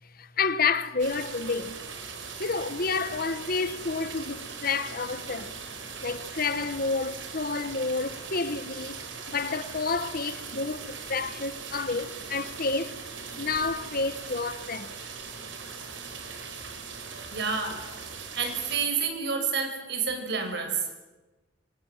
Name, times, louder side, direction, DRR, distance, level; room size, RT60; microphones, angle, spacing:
voice 1, 0.2-1.8 2.4-5.5 6.0-9.0 9.3-13.0 13.4-14.9, left 4 dB, 50° left, 1.3 m, -29 dB
sound 1, 1.0-18.9, right 5 dB, 90° right, 4.8 m, -40 dB
voice 2, 17.3-17.8 18.4-21.0, right 5 dB, 65° right, 6.1 m, -29 dB
27.0 x 26.0 x 7.5 m
head